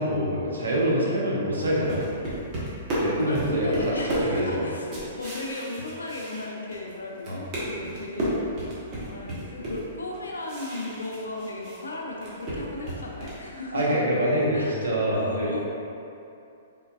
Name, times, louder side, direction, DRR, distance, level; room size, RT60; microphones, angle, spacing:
voice 1, 0.0-2.0 3.0-3.9 4.2-4.6 7.3-7.4 13.7-15.7, equal, 80° right, -5 dB, 1.0 m, -25 dB
voice 2, 0.8-1.1 3.3-8.3 9.0-14.0 14.3-14.8 15.1-15.6, left 2 dB, 90° left, -1 dB, 0.6 m, -36 dB
sound 1, 1.6-6.9 7.2-11.8 12.1-13.5, equal, 35° right, 1.2 m, -32 dB
4.0 x 3.7 x 2.4 m, 2.7 s
hypercardioid pair, 125°, 0 cm